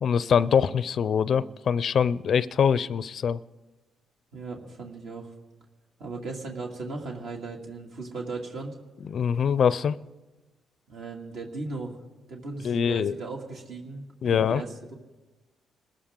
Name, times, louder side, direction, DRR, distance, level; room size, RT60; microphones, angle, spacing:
voice 1, 0.0-3.4 9.1-9.9 12.6-13.1 14.2-14.6, left 7 dB, 55° left, 17 dB, 0.4 m, -23 dB
voice 2, 4.3-5.3 6.0-8.7 10.9-12.0 12.3-14.9, right 3 dB, 70° right, -1 dB, 2.3 m, -37 dB
27.0 x 14.0 x 3.8 m, 1.1 s
cardioid pair, 90°, 0 cm